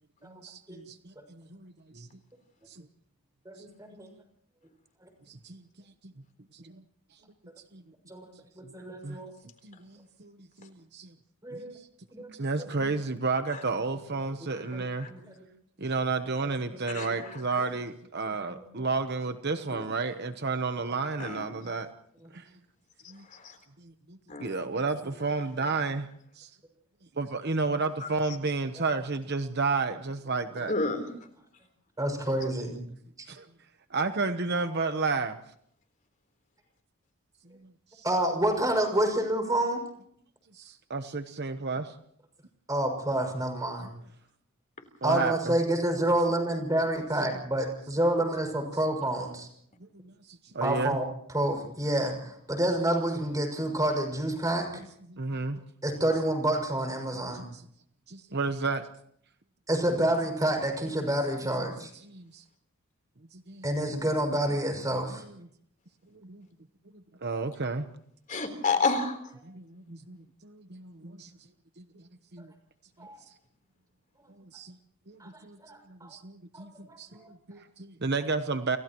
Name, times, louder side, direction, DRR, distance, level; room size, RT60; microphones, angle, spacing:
voice 1, 0.2-2.1 2.7-2.8 5.3-5.6 6.0-6.1 6.5-6.8 7.7-7.8 9.0-9.2 9.6-11.1 11.5-11.8 12.3-15.1 15.8-21.9 22.3-22.4 23.1-23.2 23.8-26.1 26.4-26.5 27.2-30.7 33.3-33.5 33.9-35.4 38.0-38.1 40.5-41.9 45.0-45.3 49.9-50.9 55.1-55.6 58.1-58.9 62.1-62.4 63.3-63.6 66.1-66.5 66.9-67.9 69.4-70.2 70.4-71.3 71.8-71.9 72.3-72.5 74.5-74.8 75.1-75.6 75.9-78.8, right 4 dB, 45° right, 8 dB, 1.0 m, -32 dB
voice 2, 3.4-4.1 5.0-5.1 8.1-9.3 11.4-11.7 12.1-12.3 12.6-12.9 14.4-15.5 16.4-16.5 17.1-17.7 18.5-18.9 22.2-22.3 28.8-28.9 32.0-32.8 33.2-33.3 38.0-39.8 42.7-43.9 45.0-49.5 50.6-54.8 55.8-57.5 59.7-61.9 63.6-65.2 72.4-72.5 73.0-73.2 75.2-76.1 76.5-77.3, right 1 dB, 15° right, 3 dB, 6.3 m, -29 dB
voice 3, 14.7-15.1 16.9-17.6 19.7-19.9 21.2-21.5 23.3-23.6 24.3-24.6 28.0-28.1 30.7-31.0 68.3-69.2, left 4 dB, 35° left, 5 dB, 3.8 m, -30 dB
30.0 x 30.0 x 3.1 m, 0.67 s
head